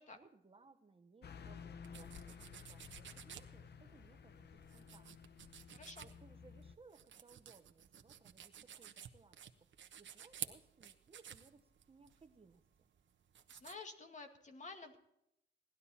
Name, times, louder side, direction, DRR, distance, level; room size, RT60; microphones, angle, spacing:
voice 1, 0.1-5.1 6.0-9.7 10.0-12.9, right 4 dB, 30° right, 8 dB, 1.1 m, -64 dB
Car passing by / Truck, 1.2-6.8, left 6 dB, 60° left, 0.8 m, -54 dB
sound 1, 1.8-13.7, right 9 dB, 80° right, 1.2 m, -53 dB
voice 2, 5.7-6.1 13.5-15.0, left 3 dB, 40° left, 5 dB, 2.2 m, -51 dB
18.0 x 12.0 x 4.3 m, 0.79 s
wide cardioid pair, 115°, 19 cm